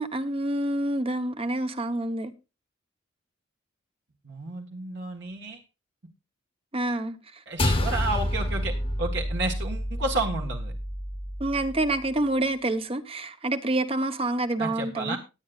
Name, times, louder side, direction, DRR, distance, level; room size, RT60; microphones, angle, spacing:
voice 1, 0.0-2.3 6.7-7.2 11.4-15.2, right 1 dB, 30° right, 0.9 m, -27 dB
voice 2, 4.2-5.6 7.5-10.7 14.6-15.2, right 2 dB, 60° right, 1.6 m, -31 dB
sound 1, 7.6-12.2, left 1 dB, 30° left, 1.1 m, -29 dB
18.0 x 9.3 x 2.5 m
head